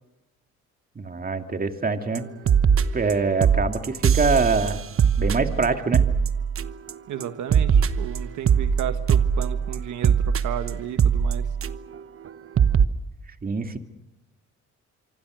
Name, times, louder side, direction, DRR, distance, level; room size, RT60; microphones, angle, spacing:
voice 1, 1.0-2.2 2.9-4.8 5.2-6.0 13.4-13.8, right 4 dB, 30° right, 6 dB, 2.4 m, -24 dB
sound 1, 2.1-2.2 2.5-3.1 3.4-6.9 7.2-12.0 12.3-12.4 12.6-12.9, right 7 dB, 45° right, 1.1 m, -21 dB
voice 2, 7.1-11.5, right 10 dB, 75° right, 9 dB, 1.5 m, -33 dB
25.5 x 25.0 x 6.4 m, 0.90 s
cardioid pair, 90°, 30 cm